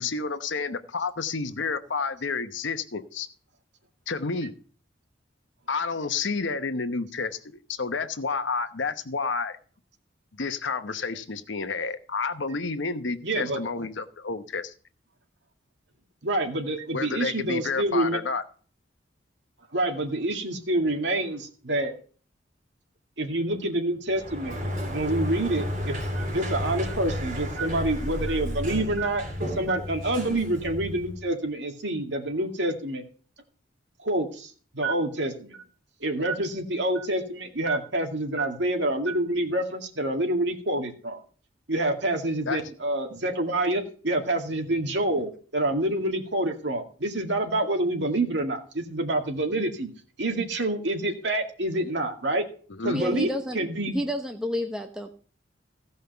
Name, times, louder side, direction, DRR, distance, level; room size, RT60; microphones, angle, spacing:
voice 1, 0.0-3.3 4.1-4.5 5.7-7.4 7.7-9.6 10.3-14.7 16.9-18.4 30.2-30.4 42.5-42.7 52.7-53.0, left 4 dB, 80° left, 10 dB, 1.0 m, -30 dB
voice 2, 13.2-13.6 16.2-18.2 19.7-21.9 23.2-24.6 24.9-29.2 29.6-33.0 34.0-35.6 36.0-41.2 41.7-49.9 50.2-52.4 52.8-53.3 53.5-53.9, right 1 dB, 70° right, 3 dB, 2.2 m, -27 dB
Sliding door, 24.1-31.2, equal, 45° right, 3.6 m, -32 dB
voice 3, 52.9-53.7 53.9-55.1, equal, 5° right, 4 dB, 0.8 m, -30 dB
15.5 x 5.5 x 6.8 m, 0.41 s
head